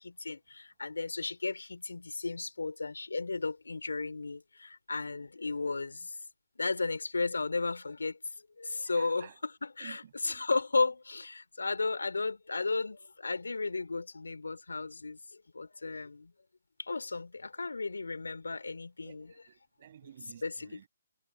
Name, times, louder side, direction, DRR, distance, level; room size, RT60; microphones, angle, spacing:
voice 1, 0.0-6.1 6.6-8.2 8.6-9.2 9.8-15.2 15.5-16.3 16.9-19.2 20.4-20.9, left 3 dB, 75° left, 2.9 m, -34 dB
voice 2, 8.8-9.4 9.8-10.5 17.6-17.7 19.0-20.9, right 10 dB, 45° right, 7.0 m, -53 dB
figure-of-eight pair, 140°, 0 cm